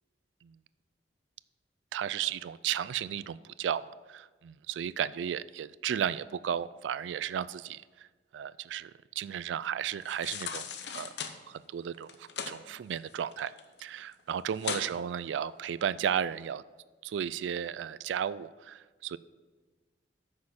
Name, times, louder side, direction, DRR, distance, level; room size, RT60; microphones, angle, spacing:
voice 1, 1.9-8.1 8.3-10.7 10.9-11.1 11.5-13.5 13.8-16.6 17.0-19.2, right 9 dB, 90° right, 18 dB, 0.3 m, -34 dB
sound 1, 10.0-11.3 12.0-12.5 12.9-13.8 14.1-14.2 14.6-14.9 15.4-15.5, left 7 dB, 70° left, 0.8 m, -37 dB
9.6 x 6.4 x 5.7 m, 1.4 s
head